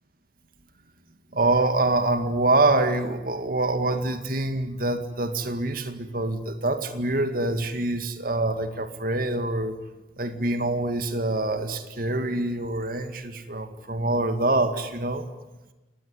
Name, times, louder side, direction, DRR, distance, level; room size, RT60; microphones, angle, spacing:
voice 1, 1.3-9.8 10.2-15.2, right 2 dB, 50° right, 8 dB, 2.1 m, -25 dB
29.0 x 19.0 x 9.7 m, 1.1 s
head